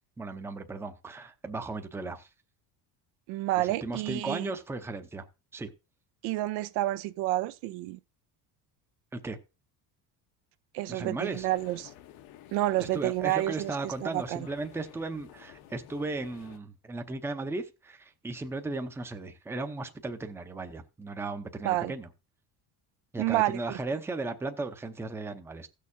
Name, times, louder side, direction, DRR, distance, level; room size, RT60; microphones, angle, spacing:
voice 1, 0.2-2.3 3.6-5.2 5.5-5.7 9.1-9.4 10.9-11.5 12.8-22.1 23.1-25.7, right 3 dB, 5° right, 0.6 m, -36 dB
voice 2, 3.3-4.5 6.2-8.0 10.7-11.9 12.5-14.4 21.6-21.9 23.2-23.8, right 16 dB, 80° right, 0.7 m, -29 dB
sound 1, 11.2-16.6, left 12 dB, 70° left, 1.0 m, -51 dB
16.0 x 6.5 x 2.7 m
cardioid pair, 160°, 39 cm